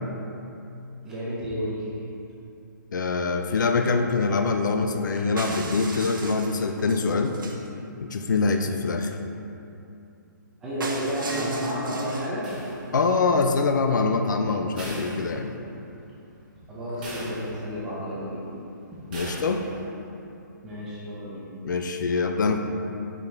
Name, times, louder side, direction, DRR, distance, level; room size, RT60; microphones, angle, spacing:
voice 1, 1.0-2.0 10.6-12.5 16.7-18.4 20.6-21.5, equal, 5° right, -8 dB, 0.6 m, -31 dB
voice 2, 2.9-7.3 8.0-9.1 12.9-15.5 19.1-19.6 21.6-22.6, left 4 dB, 65° left, 5 dB, 0.5 m, -24 dB
sound 1, 5.4-7.7 10.8-12.3, right 3 dB, 90° right, 0.9 m, -36 dB
Library Stacks Metal Frame banging, 12.4-13.3 14.8-15.9 16.3-16.4 17.0-17.9 19.1-19.9, right 1 dB, 25° right, 1.4 m, -39 dB
5.4 x 5.2 x 3.9 m, 2.7 s
hypercardioid pair, 180°, 11 cm